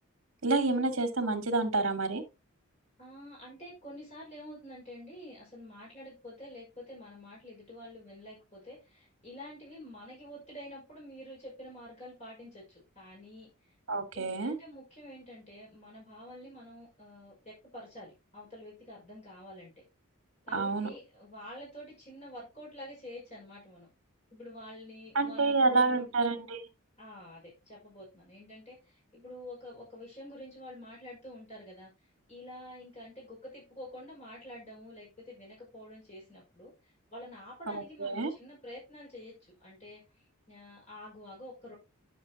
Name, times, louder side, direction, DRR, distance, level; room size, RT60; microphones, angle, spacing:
voice 1, 0.4-2.2 13.9-14.5 20.5-20.9 25.1-26.6 37.7-38.3, right 3 dB, 65° right, 1.9 m, -28 dB
voice 2, 3.0-13.7 14.1-19.8 20.4-23.9 24.3-26.1 27.0-31.9 32.3-39.3 39.6-40.0 40.5-41.7, left 1 dB, 30° left, 5.6 m, -48 dB
10.5 x 7.2 x 2.9 m
head